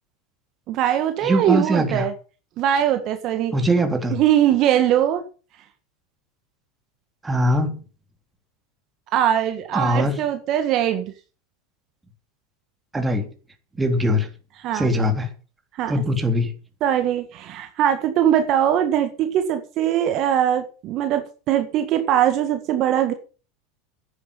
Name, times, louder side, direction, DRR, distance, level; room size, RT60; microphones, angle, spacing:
voice 1, 0.7-2.1 2.6-3.5 4.1-5.2 9.1-11.1 14.6-14.9 15.8-15.9 16.8-23.1, right 10 dB, 50° right, 7 dB, 1.8 m, -21 dB
voice 2, 1.2-2.1 3.5-4.2 7.2-7.8 9.7-10.2 12.9-13.3 13.8-14.3 14.7-15.3 15.9-16.5, equal, 15° right, 5 dB, 3.4 m, -21 dB
11.0 x 9.6 x 7.0 m, 0.36 s
hypercardioid pair, 110°, 0 cm